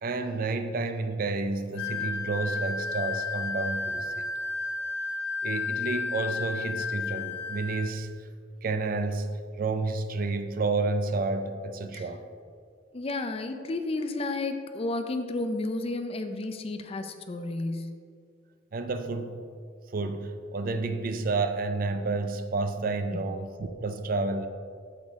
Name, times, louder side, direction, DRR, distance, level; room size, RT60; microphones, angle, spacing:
voice 1, 0.0-4.3 5.4-8.3 8.6-12.2 18.7-19.4 19.9-24.5, right 3 dB, 50° right, 8 dB, 0.5 m, -30 dB
Wind instrument woodwind instrument, 1.7-7.9, left 4 dB, 65° left, 0.8 m, -32 dB
voice 2, 12.9-17.9, left 2 dB, 30° left, 8 dB, 0.5 m, -32 dB
8.1 x 6.7 x 3.5 m, 2.2 s
head